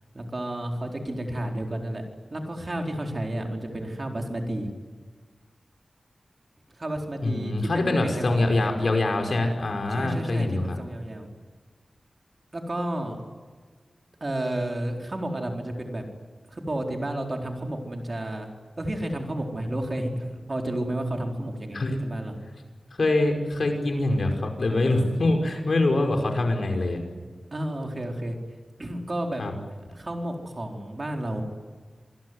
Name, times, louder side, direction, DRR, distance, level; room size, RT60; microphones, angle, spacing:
voice 1, 0.1-4.7 6.7-8.5 9.9-11.3 12.5-13.2 14.2-16.0 16.5-18.5 18.8-22.4 27.5-28.4 28.8-29.4 29.7-31.4, right 1 dB, 40° right, 2 dB, 4.4 m, -31 dB
voice 2, 7.2-10.8 21.7-22.1 22.9-27.0 29.4-29.5, left 2 dB, 65° left, 4 dB, 5.4 m, -24 dB
26.5 x 20.5 x 9.8 m, 1.5 s
wide cardioid pair, 100°, 0 cm